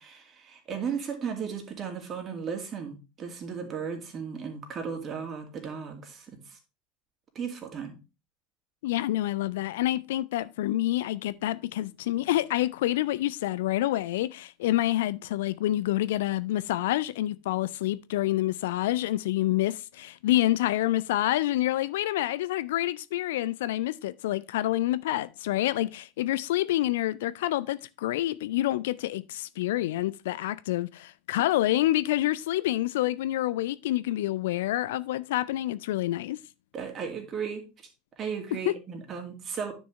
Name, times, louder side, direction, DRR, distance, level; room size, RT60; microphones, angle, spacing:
voice 1, 0.0-6.6 7.3-8.0 36.7-37.6 38.2-39.7, right 6 dB, 30° right, 2.3 m, -35 dB
voice 2, 8.8-36.4 38.7-38.8, left 15 dB, 60° left, 0.3 m, -27 dB
9.6 x 6.2 x 3.2 m
figure-of-eight pair, 75°, 0 cm